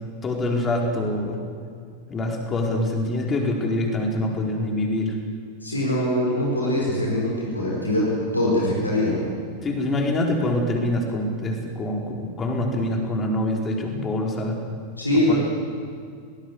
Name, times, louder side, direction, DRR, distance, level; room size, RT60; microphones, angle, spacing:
voice 1, 0.2-1.4 2.1-5.2 9.6-14.6 15.3-15.4, left 1 dB, 20° left, 1 dB, 4.4 m, -25 dB
voice 2, 5.6-9.3 15.0-15.3, left 1 dB, 85° left, -3 dB, 4.6 m, -23 dB
23.0 x 19.0 x 8.2 m, 2.2 s
figure-of-eight pair, 90°, 0 cm